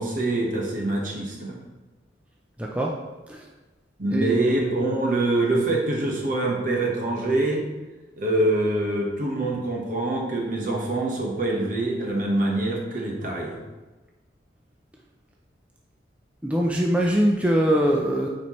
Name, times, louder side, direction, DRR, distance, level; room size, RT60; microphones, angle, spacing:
voice 1, 0.0-1.6 4.0-7.6 8.2-13.6, right 2 dB, 45° right, -1 dB, 1.3 m, -25 dB
voice 2, 2.6-2.9 3.3-3.4 4.1-4.4 16.4-18.3, equal, 10° right, -2 dB, 0.5 m, -22 dB
9.6 x 4.4 x 3.1 m, 1.2 s
head